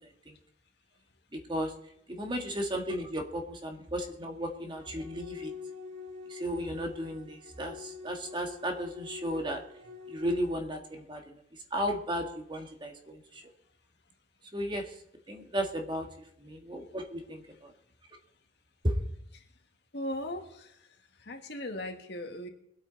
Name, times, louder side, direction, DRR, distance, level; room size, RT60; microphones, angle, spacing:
voice 1, 1.3-1.7 2.1-5.5 6.3-9.6 10.1-11.4 11.7-13.4 14.5-14.9 15.3-16.1 16.4-17.7 18.8-18.9, equal, 25° right, 3 dB, 1.7 m, -34 dB
sound 1, 4.7-10.5, left 5 dB, 75° right, 3.5 m, -46 dB
voice 2, 19.9-20.5 21.3-22.5, left 1 dB, 65° left, 4 dB, 1.8 m, -37 dB
22.5 x 8.7 x 4.0 m, 0.74 s
head